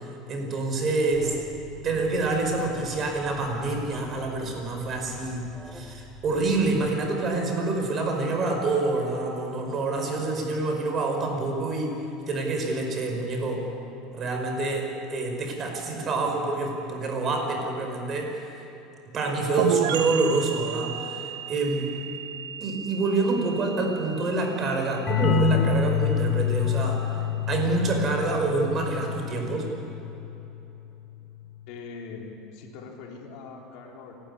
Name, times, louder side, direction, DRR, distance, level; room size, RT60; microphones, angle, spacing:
voice 1, 0.0-1.4 1.8-12.0 12.3-13.7 14.1-18.6 19.1-22.0 22.6-27.2 27.5-29.7, right 3 dB, 35° right, 3 dB, 5.1 m, -27 dB
Alarm, 1.1-6.9, equal, ahead, 1.6 m, -46 dB
sound 1, 19.6-27.1, right 10 dB, 85° right, 1.2 m, -34 dB
sound 2, 25.1-30.5, left 9 dB, 35° left, 1.2 m, -27 dB
voice 2, 31.7-34.1, left 4 dB, 65° left, 0 dB, 3.7 m, -41 dB
28.5 x 12.5 x 9.7 m, 3.0 s
supercardioid pair, 125°, 0 cm